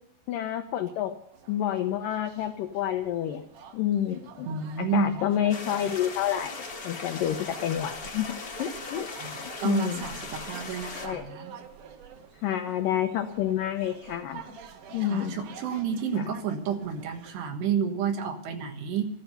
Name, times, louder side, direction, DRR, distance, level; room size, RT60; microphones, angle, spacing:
voice 1, 0.3-1.1 1.5-3.4 3.7-4.5 4.8-6.6 6.8-9.1 9.6-10.1 11.0-11.3 12.4-14.5 14.9-15.4 16.2-16.3, left 11 dB, 85° left, 6 dB, 1.9 m, -29 dB
sound 1, 1.3-17.5, right 7 dB, 65° right, 2.4 m, -48 dB
voice 2, 4.4-5.2 9.2-9.3 9.6-11.5 15.1-19.1, right 7 dB, 80° right, 5 dB, 3.5 m, -30 dB
sound 2, 5.5-11.1, left 3 dB, 55° left, 1.0 m, -39 dB
13.5 x 13.5 x 6.8 m, 0.72 s
omnidirectional pair, 4.9 m